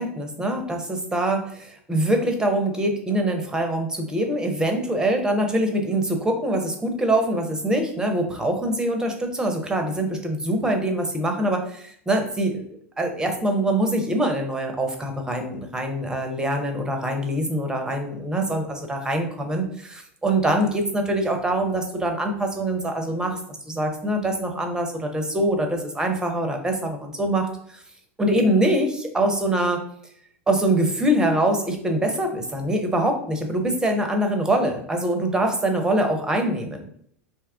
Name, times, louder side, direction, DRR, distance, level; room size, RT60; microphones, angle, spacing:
voice 1, 0.0-12.6 13.0-23.4 23.7-27.5 27.7-27.8 28.2-29.8 30.5-36.9, right 1 dB, 10° right, 4 dB, 0.6 m, -24 dB
2.8 x 2.3 x 3.4 m, 0.65 s
figure-of-eight pair, 85°, 7 cm